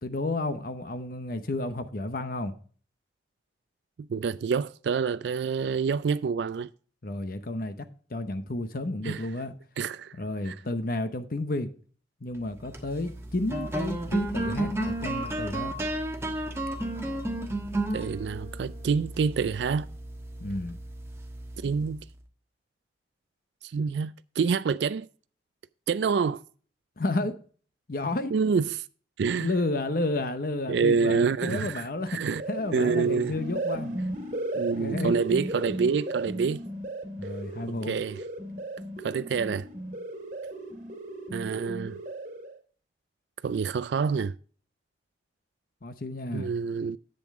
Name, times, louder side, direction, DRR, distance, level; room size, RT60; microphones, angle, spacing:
voice 1, 0.0-2.5 7.0-7.8 8.1-9.5 10.1-11.7 12.2-15.7 20.4-20.8 27.0-27.4 27.9-28.3 29.4-32.2 32.5-33.9 34.8-35.1 37.2-38.0 45.8-46.5, left 2 dB, 55° left, 0.8 m, -31 dB
voice 2, 4.0-6.7 9.0-9.2 9.8-10.1 10.5-10.6 17.9-19.9 21.6-22.0 23.6-25.1 25.9-26.4 28.3-28.8 29.2-29.5 30.7-31.8 32.1-32.4 32.7-33.3 34.5-36.6 37.9-38.2 39.0-39.7 41.3-42.0 43.4-44.3 46.3-47.0, right 5 dB, 75° right, 0.3 m, -27 dB
sound 1, 12.5-22.1, right 1 dB, 15° right, 1.3 m, -33 dB
sound 2, 32.0-42.6, right 2 dB, 45° right, 1.9 m, -35 dB
10.5 x 7.8 x 3.6 m
head